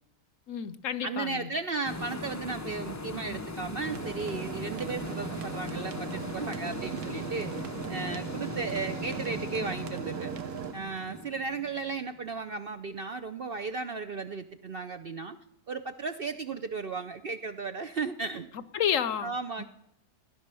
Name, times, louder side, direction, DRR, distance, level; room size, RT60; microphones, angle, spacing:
voice 1, 0.5-1.5 18.7-19.6, left 9 dB, 65° left, 1.0 m, -31 dB
voice 2, 1.0-7.5 7.9-10.3 10.7-15.4 15.7-18.5 19.2-19.6, right 4 dB, 55° right, 0.6 m, -35 dB
sound 1, 1.8-12.4, left 2 dB, 25° left, 0.3 m, -39 dB
sound 2, 3.8-10.7, right 8 dB, 75° right, 1.4 m, -39 dB
16.0 x 10.5 x 6.8 m
omnidirectional pair, 1.6 m